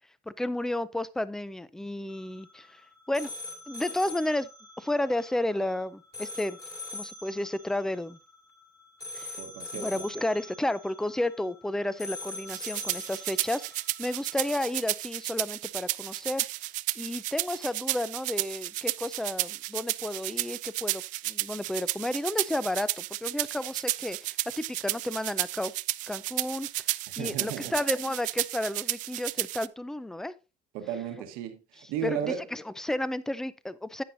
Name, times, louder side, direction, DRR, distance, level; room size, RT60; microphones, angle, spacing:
voice 1, 0.3-3.3 3.7-4.5 4.8-6.6 6.9-8.2 9.1-9.3 9.7-13.7 14.0-16.4 17.0-25.7 26.1-26.9 27.2-30.3 32.0-34.0, left 1 dB, 5° left, 0.4 m, -32 dB
sound 1, 2.1-14.5, left 2 dB, 25° left, 2.8 m, -43 dB
voice 2, 9.4-10.0 27.1-27.7 30.7-32.4, right 8 dB, 85° right, 1.2 m, -35 dB
sound 2, 12.5-29.7, right 19 dB, 60° right, 0.4 m, -32 dB
10.0 x 9.4 x 2.6 m
cardioid pair, 160°, 15 cm